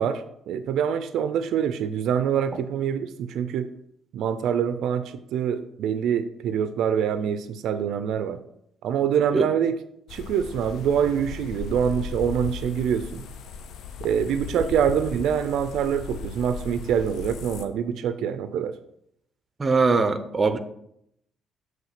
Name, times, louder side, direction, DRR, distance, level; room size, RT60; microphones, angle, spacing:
voice 1, 0.0-3.7 4.1-8.4 8.8-9.8 10.1-13.2 14.0-18.8, right 8 dB, 80° right, 12 dB, 0.4 m, -25 dB
sound 1, 10.1-17.7, left 6 dB, 75° left, 0.5 m, -37 dB
voice 2, 19.6-20.6, right 4 dB, 30° right, 11 dB, 0.6 m, -21 dB
7.0 x 3.1 x 5.7 m, 0.74 s
cardioid pair, 90°, 0 cm